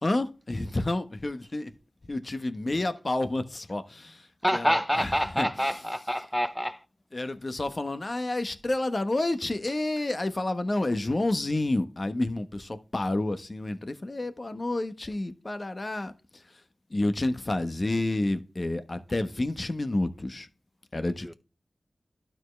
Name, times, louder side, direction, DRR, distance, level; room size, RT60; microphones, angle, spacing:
voice 1, 0.0-1.7 2.1-5.8 7.1-16.4 16.9-20.5 20.9-21.3, left 2 dB, 40° left, 1.2 m, -30 dB
voice 2, 4.4-6.8 21.2-21.3, equal, 5° left, 0.8 m, -27 dB
12.5 x 4.5 x 3.2 m
cardioid pair, 45°, 0 cm